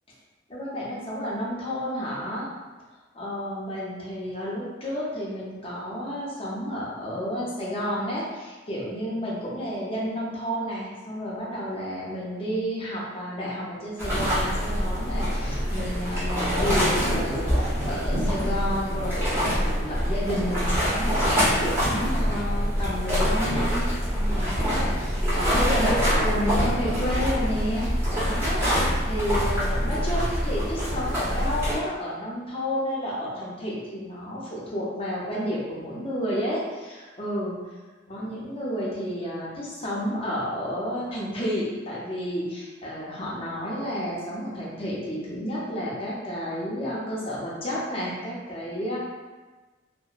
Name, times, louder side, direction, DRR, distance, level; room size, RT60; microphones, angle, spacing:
voice 1, 0.5-2.5 3.1-37.6 38.1-49.0, equal, 30° left, -5 dB, 0.6 m, -31 dB
sound 1, 14.0-31.7, equal, 15° right, 0.8 m, -25 dB
2.8 x 2.1 x 2.4 m, 1.3 s
head